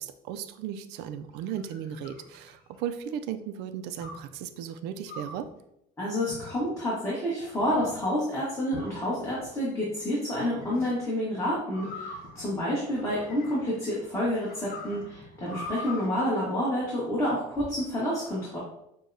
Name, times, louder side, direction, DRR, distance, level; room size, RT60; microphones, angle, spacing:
voice 1, 0.0-5.5, right 9 dB, 75° right, 9 dB, 0.4 m, -36 dB
sound 1, 1.2-3.0 4.0-4.3 5.0-5.5 6.3-6.8 7.4-8.0 8.7-9.5 10.6-10.9 11.7-13.8 14.2-16.1, left 2 dB, 60° left, 0.9 m, -43 dB
voice 2, 6.0-18.6, equal, 15° left, -7 dB, 1.4 m, -29 dB
6.3 x 2.2 x 2.7 m, 0.79 s
supercardioid pair, 100°, 18 cm